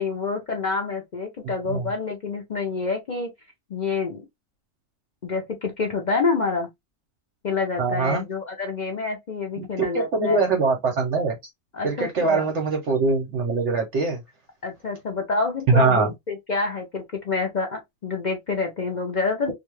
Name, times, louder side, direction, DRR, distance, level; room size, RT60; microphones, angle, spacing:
voice 1, 0.0-3.3 3.7-4.2 5.2-6.7 7.4-10.4 11.7-12.5 14.6-19.5, left 4 dB, 50° left, 0.5 m, -27 dB
voice 2, 1.4-1.9 7.8-8.2 9.6-11.4 11.8-14.2 15.7-16.1, right 4 dB, 60° right, 1.0 m, -23 dB
2.5 x 2.3 x 3.0 m
omnidirectional pair, 1.4 m